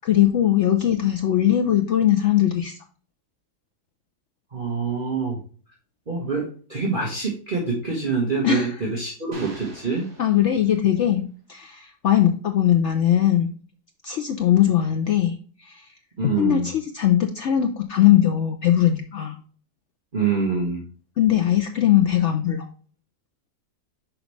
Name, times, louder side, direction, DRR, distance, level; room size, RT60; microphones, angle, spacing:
voice 1, 0.0-2.8 8.4-8.7 10.2-11.2 11.5-13.5 14.0-15.9 16.4-19.4 21.2-22.7, left 11 dB, 70° left, 4 dB, 0.6 m, -20 dB
voice 2, 4.5-5.4 6.1-10.1 16.2-16.7 20.1-20.8, right 4 dB, 30° right, -4 dB, 1.4 m, -25 dB
sound 1, 9.3-11.0, right 2 dB, 60° right, 2.2 m, -46 dB
6.2 x 5.0 x 3.2 m, 0.41 s
omnidirectional pair, 1.8 m